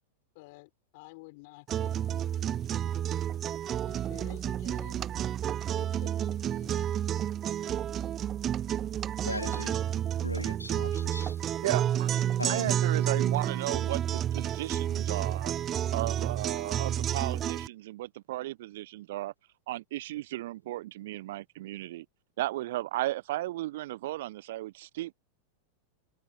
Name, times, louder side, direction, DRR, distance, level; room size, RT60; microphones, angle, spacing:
voice 1, 0.3-3.0 3.8-5.1 5.7-7.0, left 26 dB, 50° left, 6.6 m, -52 dB
sound 1, 1.7-17.7, right 10 dB, 30° right, 1.3 m, -30 dB
voice 2, 9.2-9.8 10.2-11.4 12.4-12.7, left 2 dB, 85° left, 3.7 m, -37 dB
voice 3, 11.6-12.1 12.5-15.5 15.9-19.3 19.7-22.1 22.4-25.1, right 16 dB, 55° right, 1.1 m, -35 dB
figure-of-eight pair, 90°, 0 cm